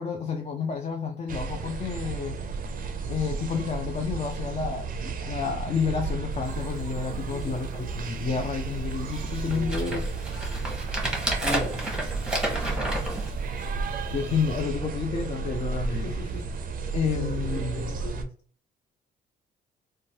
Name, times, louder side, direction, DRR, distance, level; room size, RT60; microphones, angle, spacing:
voice 1, 0.0-2.4 3.1-10.0 14.1-16.0 16.9-18.0, left 6 dB, 35° left, 2 dB, 0.4 m, -30 dB
sound 1, 1.3-18.2, right 4 dB, 45° right, 0.4 m, -33 dB
sound 2, 6.4-6.6 7.1-7.2 7.4-7.9 8.5-8.6 9.1-13.9 14.5-14.6, right 1 dB, 5° right, 0.9 m, -31 dB
voice 2, 9.4-9.7 11.4-11.8 15.9-16.4 17.0-18.3, equal, 60° left, -1 dB, 1.5 m, -36 dB
3.0 x 2.2 x 2.7 m, 0.42 s
cardioid pair, 90°, 20 cm